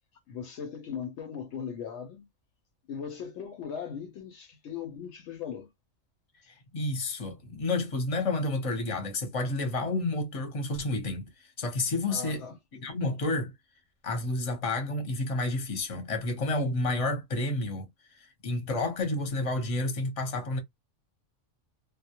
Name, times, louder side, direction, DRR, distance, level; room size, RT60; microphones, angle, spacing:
voice 1, 0.3-2.3 2.9-5.7 12.1-12.5, left 7 dB, 70° left, 0.8 m, -38 dB
voice 2, 6.5-12.4 12.7-13.5 14.0-20.6, left 2 dB, 35° left, 0.7 m, -30 dB
2.2 x 2.0 x 2.8 m
omnidirectional pair, 1.3 m